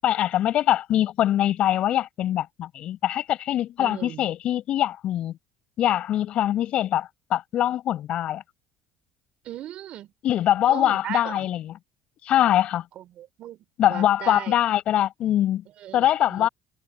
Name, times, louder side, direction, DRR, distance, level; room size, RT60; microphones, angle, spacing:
voice 1, 0.0-5.4 5.8-8.4 10.2-11.8 12.2-12.8 13.8-15.6 15.9-16.5, left 12 dB, 60° left, 6.7 m, -23 dB
voice 2, 3.8-4.3 9.4-10.1 10.7-11.5 13.0-14.5 15.8-16.5, right 12 dB, 60° right, 5.9 m, -37 dB
supercardioid pair, 90°, 2 cm